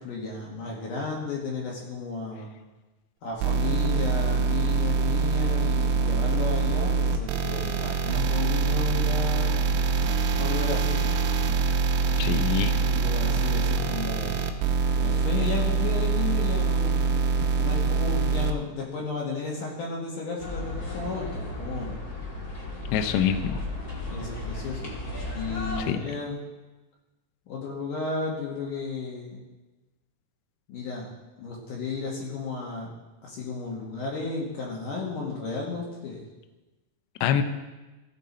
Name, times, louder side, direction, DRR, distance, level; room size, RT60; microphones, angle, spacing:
voice 1, 0.0-2.5 3.2-9.6 10.4-11.2 12.8-14.7 15.0-17.2 17.6-22.0 24.1-25.0 25.3-26.4 27.5-29.4 30.7-31.1 31.4-32.9 33.2-36.3, left 4 dB, 65° left, -3 dB, 2.2 m, -33 dB
sound 1, 3.4-18.5, right 4 dB, 80° right, 3.0 m, -24 dB
voice 2, 12.2-12.8 22.9-23.6 25.8-26.0 37.2-37.4, left 9 dB, 80° left, 7 dB, 2.7 m, -25 dB
sound 2, 20.4-25.8, left 2 dB, 40° left, 1.4 m, -35 dB
16.0 x 6.6 x 4.2 m, 1.2 s
omnidirectional pair, 5.4 m